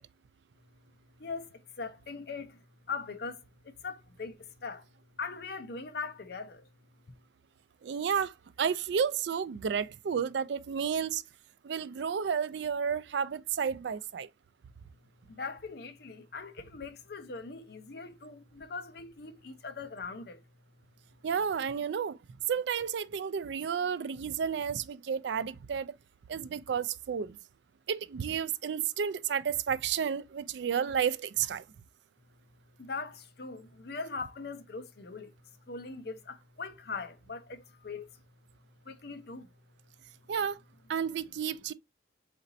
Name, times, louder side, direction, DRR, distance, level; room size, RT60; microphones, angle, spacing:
voice 1, 1.2-4.8 5.2-6.7 15.3-20.4 32.8-35.3 35.7-38.1 38.9-39.5, left 4 dB, 55° left, 0.6 m, -41 dB
voice 2, 7.8-11.2 11.6-14.3 21.2-22.2 22.5-25.9 26.3-27.4 27.9-31.6 40.3-40.6 40.9-41.7, right 7 dB, 65° right, 0.4 m, -31 dB
4.2 x 4.0 x 2.6 m
head